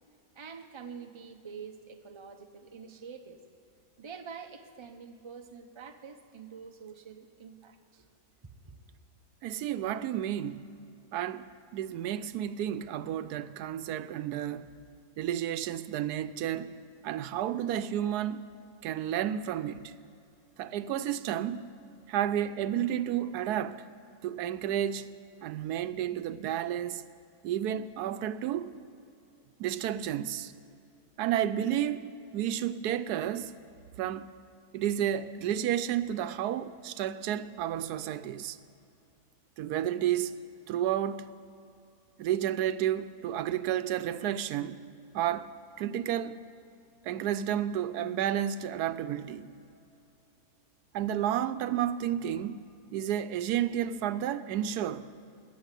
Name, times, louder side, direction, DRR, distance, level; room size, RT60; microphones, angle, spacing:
voice 1, 0.3-3.4 4.0-8.0 8.4-8.8, right 6 dB, 25° right, 0.8 m, -46 dB
voice 2, 9.4-10.7 11.1-14.7 15.2-16.7 17.0-18.4 18.8-19.9 20.6-21.7 22.1-23.8 24.2-25.1 25.4-27.0 27.4-28.7 29.6-30.5 31.2-32.1 32.3-33.6 34.0-34.3 34.7-38.6 39.6-40.4 40.7-41.3 42.2-44.8 45.1-45.5 45.8-46.4 47.0-49.5 50.9-55.1, right 10 dB, 85° right, 1.1 m, -31 dB
17.0 x 7.0 x 9.7 m
omnidirectional pair, 1.6 m